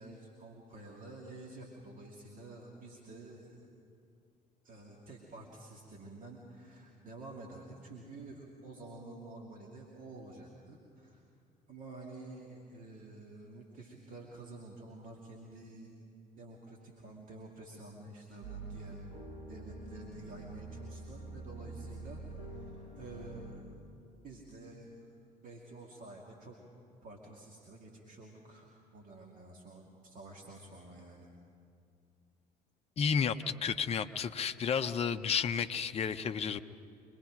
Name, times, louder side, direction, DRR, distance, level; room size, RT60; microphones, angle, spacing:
voice 1, 0.0-3.7 4.6-11.2 11.7-15.9 16.4-19.0 19.5-23.7 24.2-25.0 25.4-26.6 27.0-31.3, right 2 dB, 40° right, -1 dB, 2.6 m, -50 dB
sound 1, 18.4-23.6, right 2 dB, 75° right, 2.6 m, -46 dB
voice 2, 33.0-36.6, left 7 dB, 30° left, 9 dB, 0.8 m, -32 dB
25.0 x 21.0 x 5.2 m, 2.4 s
figure-of-eight pair, 55°, 21 cm